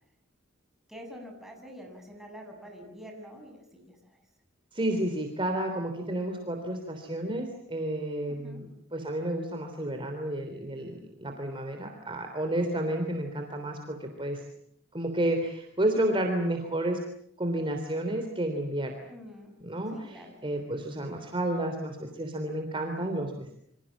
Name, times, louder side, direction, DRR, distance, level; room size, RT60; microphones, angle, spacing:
voice 1, 0.9-4.2 8.4-8.6 19.1-19.6 19.9-20.3, equal, ahead, 1 dB, 7.7 m, -46 dB
voice 2, 4.7-8.7 8.9-14.4 14.9-17.0 17.4-18.9 19.6-23.6, right 1 dB, 25° right, 4 dB, 3.4 m, -31 dB
28.5 x 26.0 x 7.4 m, 0.71 s
head